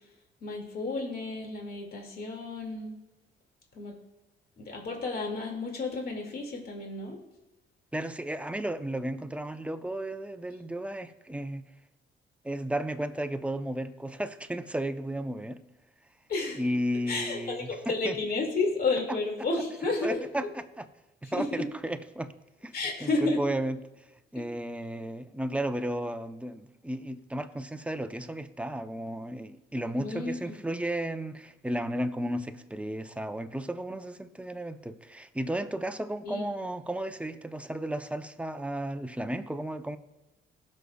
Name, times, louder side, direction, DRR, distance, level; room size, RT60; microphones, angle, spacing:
voice 1, 0.4-2.9 3.7-3.9 4.6-7.2 16.3-16.6 17.1-20.2 21.2-21.7 22.7-23.4 30.0-30.4 36.2-36.5, left 3 dB, 50° left, 1 dB, 2.2 m, -31 dB
voice 2, 7.9-11.6 12.4-15.6 16.6-17.8 18.0-18.1 19.1-19.2 20.0-20.8 21.3-22.3 22.6-22.7 23.0-23.8 24.3-40.0, right 1 dB, 5° right, 8 dB, 0.6 m, -34 dB
18.5 x 6.4 x 2.3 m, 1.0 s
cardioid pair, 90°, 20 cm